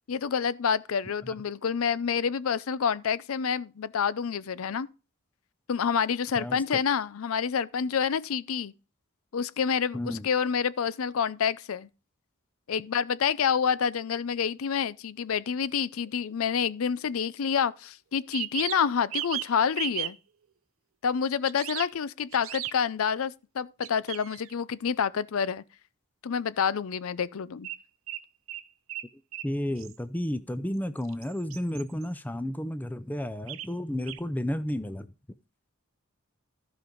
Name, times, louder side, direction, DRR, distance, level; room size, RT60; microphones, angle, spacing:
voice 1, 0.1-4.9 5.7-8.7 9.3-11.9 12.7-20.2 21.0-25.6 26.2-27.7, left 7 dB, 80° left, 0.5 m, -28 dB
voice 2, 6.4-6.8 9.9-10.3 29.4-35.1, left 1 dB, 10° left, 0.5 m, -32 dB
sound 1, 16.0-16.1 18.2-19.5 19.8-20.1 21.5-21.9 22.3-22.7 23.8-24.5 27.6-27.8 28.1-29.1 29.3-29.5 29.8-30.0 31.0-32.1 33.5-33.7 34.1-34.2, right 13 dB, 70° right, 0.6 m, -36 dB
14.5 x 5.2 x 3.8 m
head